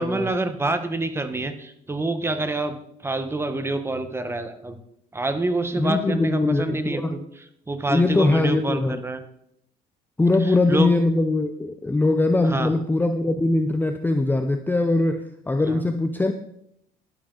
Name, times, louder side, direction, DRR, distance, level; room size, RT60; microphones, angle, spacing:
voice 1, 0.0-2.8 3.0-4.8 5.1-7.2 7.7-9.2 10.4-10.9 12.4-12.7 15.6-15.8, right 2 dB, 15° right, 9 dB, 1.1 m, -27 dB
voice 2, 5.8-7.2 7.9-9.0 10.2-16.3, left 2 dB, 10° left, 8 dB, 0.6 m, -21 dB
11.5 x 8.7 x 3.9 m, 0.74 s
cardioid pair, 110°, 17 cm